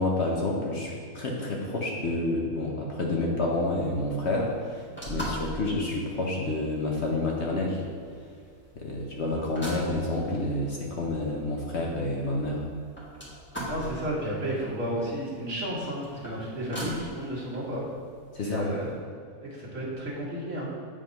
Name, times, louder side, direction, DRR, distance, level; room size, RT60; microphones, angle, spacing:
voice 1, 0.0-7.8 8.8-12.6 18.3-18.7, left 2 dB, 50° left, -1 dB, 1.0 m, -29 dB
sound 1, 3.6-19.0, equal, 5° left, 1.4 m, -42 dB
voice 2, 13.7-17.8 18.4-18.9 19.4-20.7, right 1 dB, 50° right, -6 dB, 2.0 m, -32 dB
8.2 x 3.6 x 5.2 m, 2.3 s
omnidirectional pair, 1.7 m